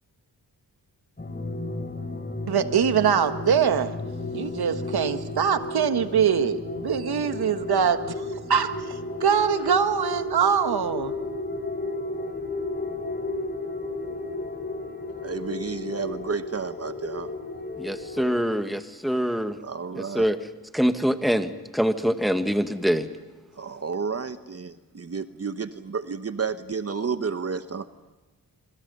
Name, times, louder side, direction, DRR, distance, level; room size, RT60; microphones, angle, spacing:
sound 1, 1.2-18.4, left 2 dB, 25° left, 3.6 m, -33 dB
voice 1, 2.5-3.9 4.3-8.1 8.5-11.1, right 7 dB, 70° right, 10 dB, 1.6 m, -23 dB
voice 2, 15.2-17.3 19.6-20.3 23.6-27.8, right 5 dB, 40° right, 11 dB, 1.0 m, -31 dB
voice 3, 17.8-19.6 19.9-20.4 20.7-23.1, equal, ahead, 8 dB, 1.8 m, -24 dB
26.0 x 25.5 x 5.5 m, 1.2 s
cardioid pair, 75°, 39 cm